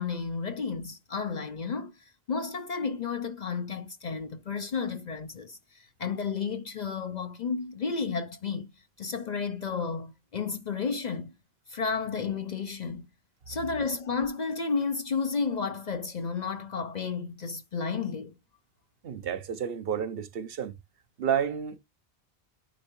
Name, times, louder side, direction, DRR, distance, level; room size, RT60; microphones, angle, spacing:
voice 1, 0.0-8.7 9.0-11.3 11.7-13.1 13.5-18.4, left 5 dB, 50° left, 0.7 m, -32 dB
voice 2, 19.0-20.8 21.2-21.8, right 8 dB, 70° right, 1.0 m, -30 dB
9.3 x 4.4 x 3.0 m
omnidirectional pair, 1.0 m